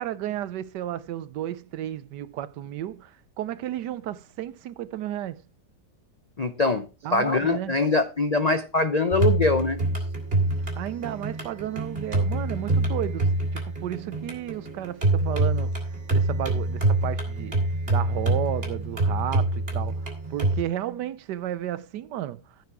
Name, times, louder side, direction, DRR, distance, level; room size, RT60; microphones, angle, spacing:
voice 1, 0.0-5.4 7.0-7.8 10.8-15.8 16.1-17.6 17.9-22.4, right 12 dB, 80° right, 1.3 m, -33 dB
voice 2, 6.4-9.8, left 3 dB, 55° left, 0.4 m, -23 dB
sound 1, 9.1-20.6, right 2 dB, 35° right, 3.3 m, -26 dB
14.5 x 6.4 x 4.6 m
omnidirectional pair, 1.8 m